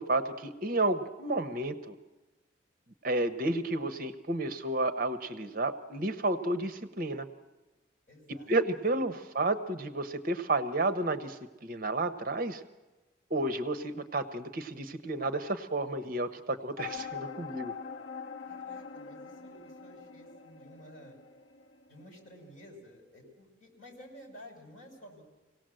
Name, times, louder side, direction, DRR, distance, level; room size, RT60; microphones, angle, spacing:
voice 1, 0.0-2.0 3.0-7.3 8.3-12.6 13.3-17.7, right 2 dB, 45° right, 10 dB, 1.0 m, -31 dB
voice 2, 8.1-8.6 8.9-9.3 18.5-21.1 21.9-25.2, equal, 40° left, 2 dB, 5.8 m, -52 dB
sound 1, 16.8-22.3, left 6 dB, 70° left, 0.6 m, -43 dB
25.5 x 18.0 x 7.7 m, 1.1 s
head